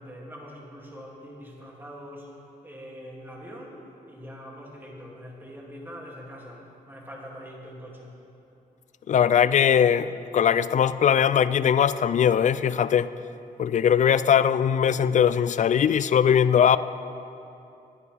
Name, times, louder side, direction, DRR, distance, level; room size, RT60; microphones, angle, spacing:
voice 1, 0.0-8.2, equal, 15° right, -3 dB, 2.5 m, -43 dB
voice 2, 9.1-13.1 13.6-16.8, left 8 dB, 50° left, 15 dB, 0.4 m, -20 dB
21.0 x 9.6 x 3.5 m, 2.7 s
cardioid pair, 100°, 16 cm